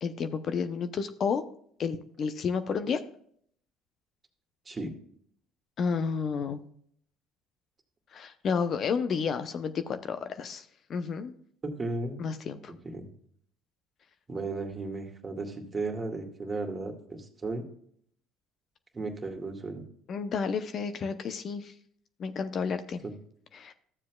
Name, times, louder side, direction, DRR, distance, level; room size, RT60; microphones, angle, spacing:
voice 1, 0.0-1.4 1.8-3.0 5.8-6.7 8.1-11.3 12.2-12.7 20.1-21.7 22.2-23.0 23.5-23.7, left 6 dB, 45° left, 10 dB, 0.7 m, -31 dB
voice 2, 11.6-12.2 12.8-13.1 14.3-17.6 18.9-19.8 23.0-23.1, right 3 dB, 25° right, 3 dB, 1.9 m, -35 dB
13.0 x 7.4 x 2.3 m, 0.63 s
hypercardioid pair, 65°, 0 cm